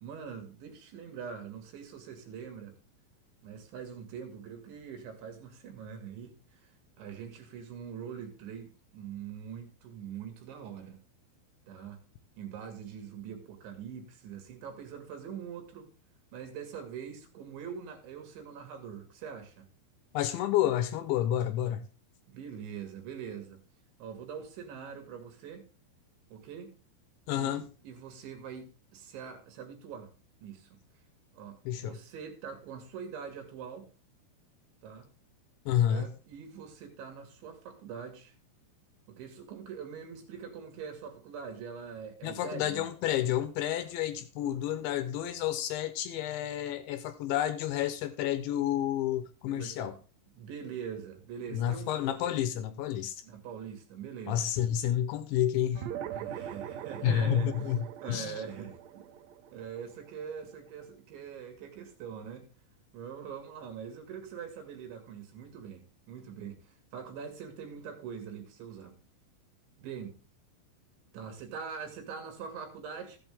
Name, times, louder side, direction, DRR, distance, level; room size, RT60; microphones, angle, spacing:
voice 1, 0.0-2.8 3.4-6.7 7.0-11.0 11.7-12.0 12.4-15.9 16.3-19.7 22.3-23.6 24.0-25.6 26.3-26.7 27.4-28.7 28.9-30.1 30.4-30.8 31.3-33.9 34.8-35.1 35.9-38.4 39.1-42.8 49.5-49.9 50.3-52.0 53.2-54.5 56.1-57.7 58.0-59.1 59.5-62.5 62.9-68.9 69.8-70.2 71.1-73.2, right 7 dB, 70° right, 4.0 m, -43 dB
voice 2, 20.1-21.8 27.3-27.6 31.7-32.0 35.7-36.1 42.2-49.9 51.5-53.2 54.3-55.9 57.0-58.4, left 11 dB, 80° left, 2.9 m, -30 dB
sound 1, 55.8-60.6, right 10 dB, 85° right, 2.4 m, -42 dB
15.0 x 8.1 x 3.6 m
omnidirectional pair, 5.7 m